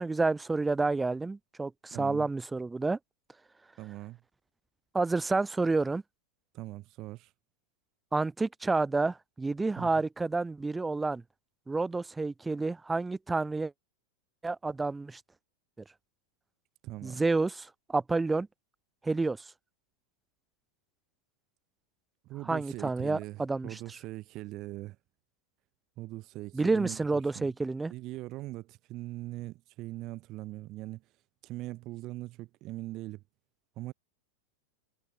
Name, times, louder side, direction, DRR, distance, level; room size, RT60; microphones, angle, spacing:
voice 1, 0.0-3.0 4.9-6.0 8.1-11.2 11.7-13.7 14.4-15.2 17.0-18.5 19.0-19.4 22.5-23.8 26.5-27.9, right 3 dB, 10° right, 2.6 m, -29 dB
voice 2, 1.9-2.3 3.8-4.2 6.5-7.3 9.8-9.9 16.8-17.2 22.2-25.0 26.0-27.0 27.3-27.5 27.9-31.0 31.4-33.2 33.8-33.9, right 18 dB, 40° right, 2.7 m, -41 dB
figure-of-eight pair, 90°, 0 cm